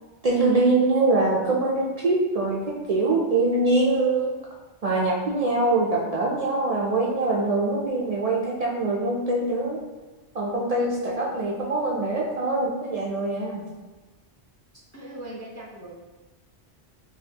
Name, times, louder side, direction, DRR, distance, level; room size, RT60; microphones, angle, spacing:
voice 1, 0.2-2.6 2.9-4.3 4.8-9.8 10.3-13.6, right 2 dB, 55° right, -3 dB, 0.4 m, -23 dB
voice 2, 11.1-11.5 14.9-15.9, right 1 dB, 25° left, -4 dB, 0.3 m, -40 dB
4.0 x 2.8 x 2.8 m, 1.3 s
omnidirectional pair, 1.1 m